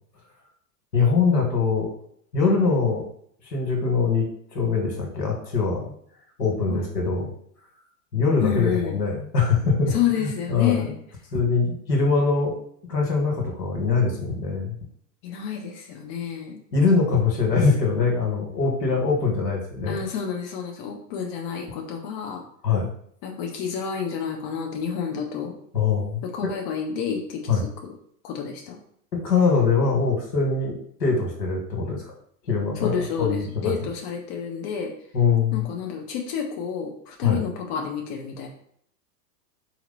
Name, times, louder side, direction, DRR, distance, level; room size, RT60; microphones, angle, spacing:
voice 1, 0.9-1.9 2.3-3.1 3.5-5.9 6.4-7.3 8.1-9.9 10.2-10.9 11.3-12.6 12.9-14.8 16.7-20.0 22.6-22.9 25.7-26.5 27.5-27.6 29.1-32.0 32.5-33.7 35.1-35.7 37.2-37.4, left 4 dB, 85° left, 0 dB, 1.7 m, -23 dB
voice 2, 8.4-9.0 9.9-11.0 15.2-16.6 19.9-22.4 23.2-25.5 26.2-27.6 28.2-28.8 32.8-34.9 35.5-38.5, left 7 dB, 40° left, 1 dB, 0.9 m, -29 dB
4.1 x 2.9 x 4.0 m, 0.65 s
hypercardioid pair, 120°, 49 cm